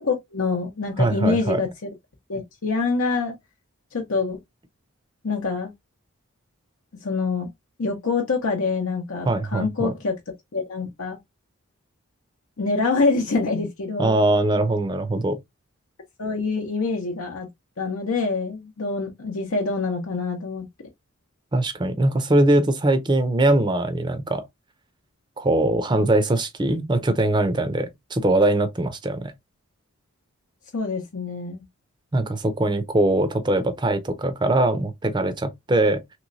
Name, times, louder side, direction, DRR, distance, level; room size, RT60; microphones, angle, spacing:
voice 1, 0.0-1.9 2.3-3.3 3.9-4.4 5.2-5.7 7.0-7.5 7.8-10.1 10.5-11.2 12.6-14.2 16.2-17.5 17.8-20.7 30.7-31.6, left 4 dB, 75° left, 0.8 m, -25 dB
voice 2, 1.0-1.6 9.3-9.9 14.0-15.4 21.5-24.4 25.4-29.3 32.1-36.0, right 1 dB, 20° right, 0.5 m, -21 dB
3.1 x 3.0 x 2.5 m
head